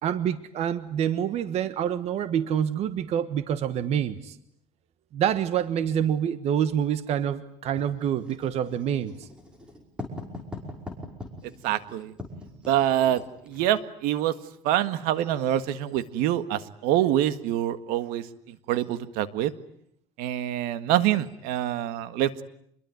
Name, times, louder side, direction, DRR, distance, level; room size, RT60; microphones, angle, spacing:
voice 1, 0.0-4.4 5.1-9.3, right 9 dB, 45° right, 13 dB, 1.4 m, -27 dB
Writing, 7.8-13.7, left 2 dB, 5° right, 5.6 m, -41 dB
voice 2, 11.6-12.1 12.7-14.3 14.6-19.5 20.2-22.4, right 12 dB, 70° right, 13 dB, 1.8 m, -26 dB
27.5 x 22.5 x 9.5 m, 0.70 s
cardioid pair, 160°, 15 cm